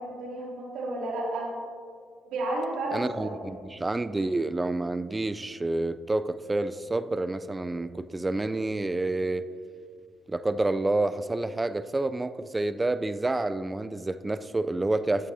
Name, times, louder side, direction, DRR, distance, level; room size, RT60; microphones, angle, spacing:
voice 1, 0.0-1.5 2.2-3.3, right 2 dB, 90° right, -4 dB, 2.7 m, -32 dB
voice 2, 2.9-9.5 10.3-15.3, right 2 dB, 20° right, 13 dB, 0.4 m, -28 dB
14.5 x 8.4 x 2.7 m, 2.1 s
cardioid pair, 90°, 0 cm